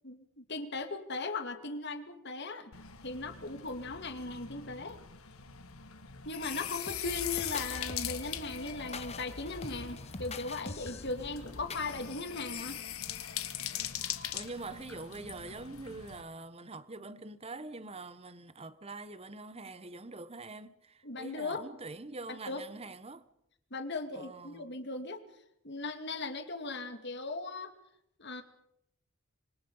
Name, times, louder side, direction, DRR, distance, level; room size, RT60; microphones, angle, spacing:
voice 1, 0.0-2.7 3.0-5.0 6.3-12.8 21.0-21.6 22.3-22.6 23.7-25.2 25.6-27.7 28.2-28.4, left 3 dB, 50° left, 2.4 m, -38 dB
sound 1, 2.7-16.2, left 10 dB, 85° left, 1.8 m, -41 dB
sound 2, 6.9-11.9, left 3 dB, 30° left, 0.9 m, -44 dB
voice 2, 14.3-23.3 24.1-24.7, right 3 dB, 30° right, 1.1 m, -44 dB
26.0 x 24.5 x 5.6 m
head